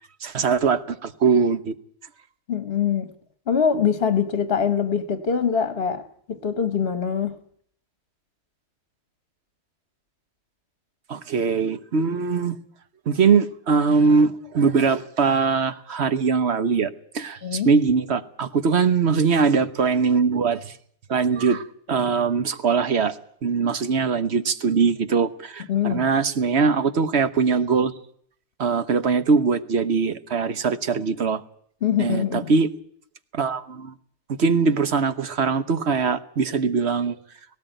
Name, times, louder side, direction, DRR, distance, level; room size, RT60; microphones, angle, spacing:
voice 1, 0.2-1.7 11.1-12.6 13.1-20.7 21.1-23.2 23.4-27.9 28.6-31.4 32.0-32.7 33.3-33.9 34.4-37.2, right 5 dB, 70° right, 1.3 m, -21 dB
voice 2, 2.5-3.1 3.5-6.0 6.3-7.4 17.4-17.7 25.7-26.0 31.8-32.5, left 7 dB, 60° left, 1.3 m, -23 dB
17.5 x 17.5 x 9.1 m
omnidirectional pair, 1.2 m